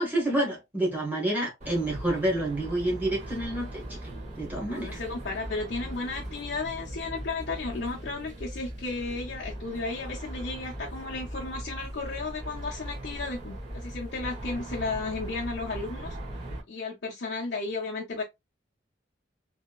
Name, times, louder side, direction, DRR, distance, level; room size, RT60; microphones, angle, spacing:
voice 1, 0.0-4.0 4.4-5.0, right 1 dB, 10° right, 1.3 m, -28 dB
sound 1, 1.6-16.6, right 1 dB, 40° right, 1.3 m, -39 dB
voice 2, 4.6-16.2 16.7-18.2, left 3 dB, 65° left, 0.6 m, -34 dB
3.0 x 2.8 x 2.3 m
head